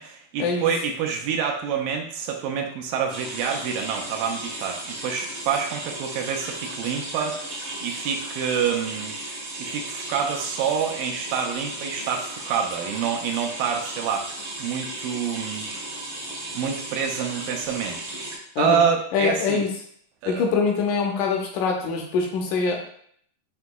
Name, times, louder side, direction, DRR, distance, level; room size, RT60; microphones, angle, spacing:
voice 1, 0.0-9.1 9.6-15.7 16.5-18.0 18.6-19.6 20.2-20.5, right 7 dB, 85° right, 2 dB, 2.2 m, -27 dB
sound 1, 3.1-18.4, right 1 dB, 65° right, 1.3 m, -35 dB
voice 2, 19.1-19.7 20.3-22.8, left 5 dB, 80° left, 1 dB, 1.9 m, -23 dB
6.8 x 2.7 x 2.2 m, 0.62 s
omnidirectional pair, 3.9 m